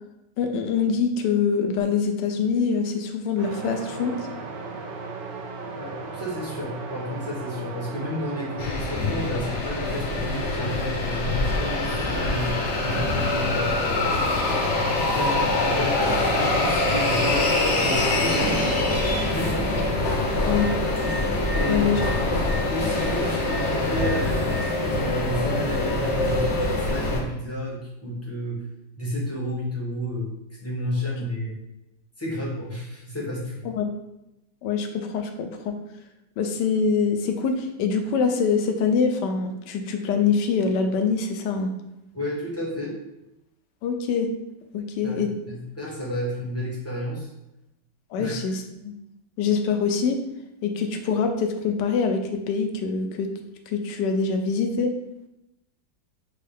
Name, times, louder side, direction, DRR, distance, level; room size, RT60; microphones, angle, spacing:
voice 1, 0.4-4.1 20.4-20.7 21.7-22.0 33.6-33.9 34.6-35.7 36.4-41.7 43.8-44.3 44.7-45.3 48.1-48.9 49.4-50.2 50.6-52.2 52.5-53.3 53.7-54.9, left 5 dB, 75° left, 5 dB, 1.1 m, -24 dB
sound 1, 3.4-8.6, right 3 dB, 70° right, 1.4 m, -36 dB
voice 2, 5.8-14.5 14.7-19.9 21.5-21.9 22.7-28.6 29.0-31.6 32.2-33.6 42.1-43.0 45.0-47.3 48.1-48.4, left 1 dB, 15° left, -5 dB, 0.6 m, -31 dB
sound 2, 8.6-27.2, left 2 dB, 50° left, 0.9 m, -24 dB
6.5 x 2.3 x 3.4 m, 0.89 s
omnidirectional pair, 2.1 m